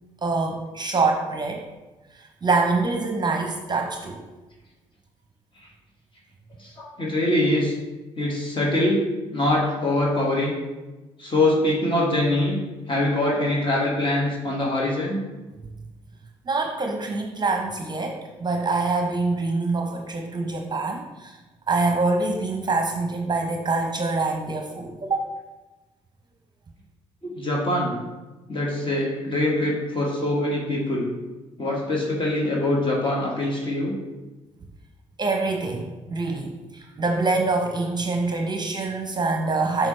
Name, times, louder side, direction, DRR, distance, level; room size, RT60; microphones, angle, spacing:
voice 1, 0.2-1.6 2.1-4.2 16.5-21.4 21.7-25.2 35.2-39.9, right 3 dB, 30° right, 2 dB, 0.9 m, -25 dB
voice 2, 6.6-7.7 8.2-9.0 9.3-10.6 11.2-12.6 12.9-15.2 27.2-28.0 28.5-31.1 31.6-34.0, left 1 dB, 35° left, -3 dB, 1.8 m, -23 dB
7.3 x 4.9 x 3.2 m, 1.1 s
hypercardioid pair, 45°, 15 cm